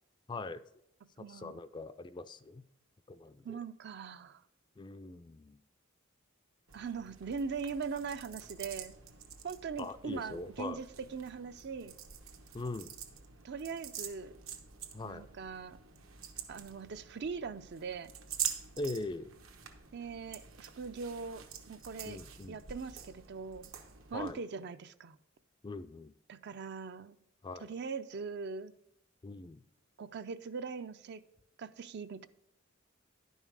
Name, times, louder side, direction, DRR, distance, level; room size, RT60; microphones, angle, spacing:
voice 1, 0.3-0.6 1.3-2.6 3.1-3.6 4.8-5.6 9.8-10.8 12.5-12.9 14.9-15.3 18.8-19.3 22.1-22.6 24.1-24.4 25.6-26.1 27.4-27.7 29.2-29.6, left 2 dB, 20° left, 12 dB, 0.3 m, -41 dB
voice 2, 1.2-1.5 3.4-4.4 6.7-8.9 9.4-11.9 13.4-14.3 15.0-15.8 16.5-18.1 19.9-22.2 22.5-23.7 24.1-25.2 26.3-27.2 27.6-28.7 30.0-31.2 31.6-32.3, right 5 dB, 55° right, 12 dB, 0.5 m, -41 dB
sound 1, 6.7-24.3, right 8 dB, 80° right, 1.1 m, -46 dB
11.0 x 5.5 x 4.7 m, 0.78 s
head